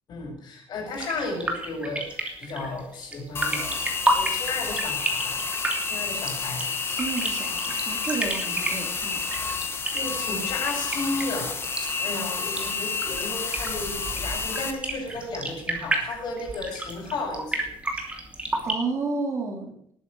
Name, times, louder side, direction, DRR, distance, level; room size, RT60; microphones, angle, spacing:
voice 1, 0.1-5.4 5.9-6.6 9.6-11.6 12.0-17.6, left 2 dB, 50° left, 1 dB, 6.6 m, -34 dB
sound 1, 0.9-18.7, right 1 dB, 15° right, 2.9 m, -32 dB
sound 2, 3.4-14.7, left 5 dB, 25° left, 1.7 m, -30 dB
voice 2, 6.9-9.2 18.6-19.7, right 4 dB, 30° right, 2 dB, 3.3 m, -31 dB
19.5 x 9.6 x 6.4 m, 0.68 s
cardioid pair, 175°, 10 cm